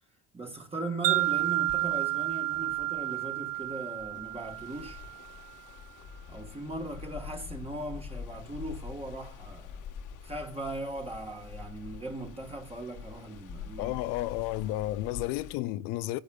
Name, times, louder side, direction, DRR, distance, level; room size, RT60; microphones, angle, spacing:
voice 1, 0.3-5.0 6.3-9.8 10.2-14.0, right 2 dB, 15° right, 1.5 m, -39 dB
Wind chime, 1.0-5.3, right 18 dB, 75° right, 0.6 m, -30 dB
sound 1, 1.1-15.6, left 7 dB, 60° left, 1.4 m, -46 dB
voice 2, 13.8-16.2, left 15 dB, 90° left, 0.6 m, -32 dB
18.0 x 10.5 x 2.3 m
cardioid pair, 110°, 34 cm